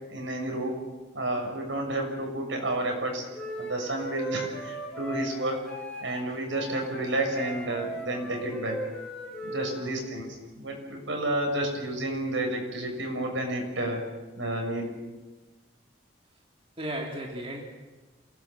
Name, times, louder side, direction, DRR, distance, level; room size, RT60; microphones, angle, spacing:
voice 1, 0.1-0.8 1.1-3.2 3.6-5.6 6.0-8.8 9.4-10.3 10.5-14.0 14.4-14.9, right 1 dB, 85° right, 2 dB, 6.7 m, -30 dB
Wind instrument woodwind instrument, 3.3-9.8, right 1 dB, 5° left, 6.5 m, -38 dB
voice 2, 9.7-10.1 16.8-17.6, right 1 dB, 30° right, -1 dB, 3.0 m, -35 dB
28.0 x 17.5 x 7.6 m, 1.2 s
head